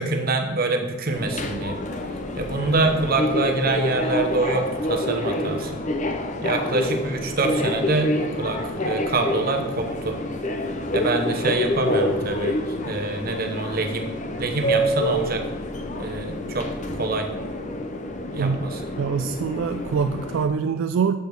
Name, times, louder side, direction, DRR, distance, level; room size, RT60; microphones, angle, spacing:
voice 1, 0.0-1.8 2.4-5.8 6.4-10.2 10.9-12.6 12.9-14.1 14.4-15.4 16.0-16.7 17.0-17.3 18.3-18.9, right 2 dB, 45° right, 4 dB, 0.9 m, -25 dB
Subway metro underground, 1.1-20.5, left 1 dB, 35° left, 0.6 m, -27 dB
voice 2, 19.0-21.2, right 6 dB, 70° right, 8 dB, 0.3 m, -24 dB
6.9 x 5.1 x 6.0 m, 1.2 s
head